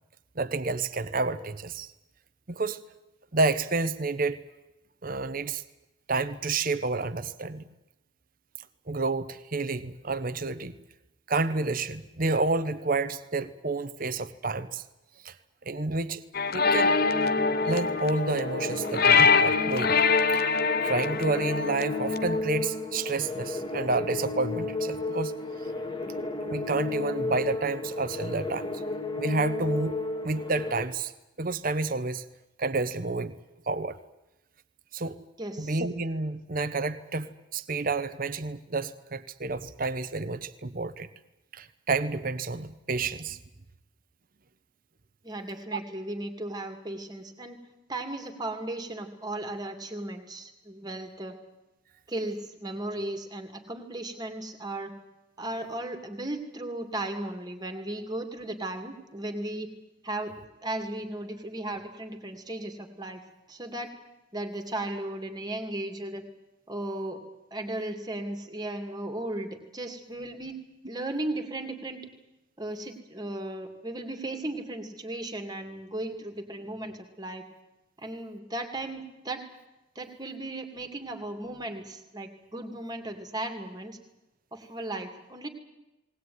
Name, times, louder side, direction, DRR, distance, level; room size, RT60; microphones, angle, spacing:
voice 1, 0.4-1.9 2.5-2.8 3.3-4.4 5.0-5.6 6.1-7.6 8.9-10.7 11.3-14.8 15.2-15.3 15.7-16.2 16.5-16.9 17.6-19.9 20.3-20.4 20.8-25.3 26.4-28.8 29.2-31.1 31.4-32.2 32.6-33.4 33.7-34.0 34.9-35.2 35.6-41.1 41.5-43.4 45.7-45.8, right 3 dB, 40° right, 0.9 m, -29 dB
sound 1, 16.3-22.4, left 5 dB, 45° left, 0.8 m, -24 dB
sound 2, 16.6-30.9, left 2 dB, 20° left, 1.8 m, -33 dB
voice 2, 35.4-35.8 45.2-47.6 47.9-51.4 52.1-54.9 55.4-59.7 60.0-60.3 60.6-63.2 63.5-63.9 64.3-66.2 66.7-67.2 67.5-70.6 70.9-72.0 72.6-77.4 78.0-79.4 80.0-84.0 84.5-85.5, right 1 dB, 20° right, 2.4 m, -36 dB
19.5 x 19.5 x 9.5 m
head